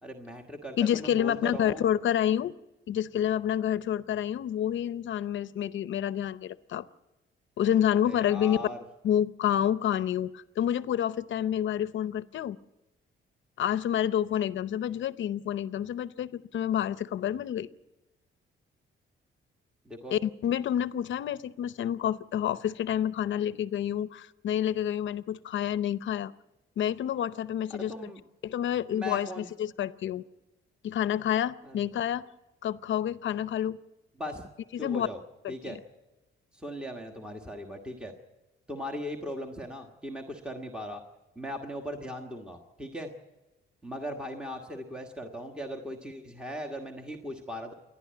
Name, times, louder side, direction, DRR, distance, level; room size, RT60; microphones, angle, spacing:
voice 1, 0.0-1.9 7.9-8.8 19.8-20.2 27.7-28.2 28.9-29.5 31.6-31.8 34.2-34.5 34.8-35.2 35.5-35.8 36.5-38.1 38.7-41.0 41.3-43.1 43.8-47.7, equal, 5° right, 3 dB, 1.4 m, -38 dB
voice 2, 0.8-2.5 2.9-6.9 7.6-8.7 9.0-12.6 13.6-17.7 20.1-26.3 26.8-28.1 28.4-30.2 30.8-32.2 32.6-33.8 34.7-35.1 35.4-35.8, left 10 dB, 65° left, 15 dB, 0.7 m, -28 dB
29.0 x 11.5 x 9.3 m, 1.1 s
cardioid pair, 155°, 21 cm